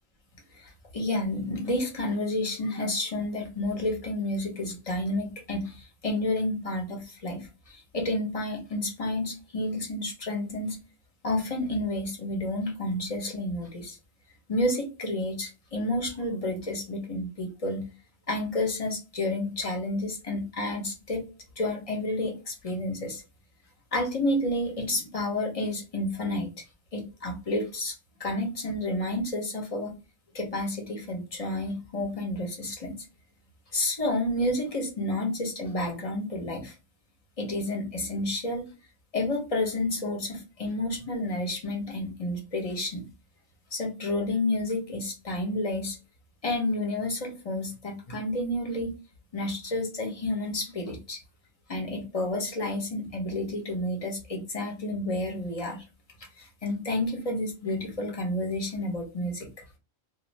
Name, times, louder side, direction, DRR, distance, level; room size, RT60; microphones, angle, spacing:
voice 1, 0.5-10.8 11.2-14.0 14.5-17.9 18.3-21.2 21.6-23.2 23.9-26.5 26.9-27.9 28.2-30.0 30.3-33.0 33.7-36.7 37.4-38.7 39.1-43.1 43.7-46.0 46.4-48.9 49.3-51.2 51.7-55.8 56.4-59.5, left 1 dB, 35° left, 1 dB, 0.7 m, -30 dB
2.4 x 2.2 x 3.1 m, 0.30 s
omnidirectional pair, 1.4 m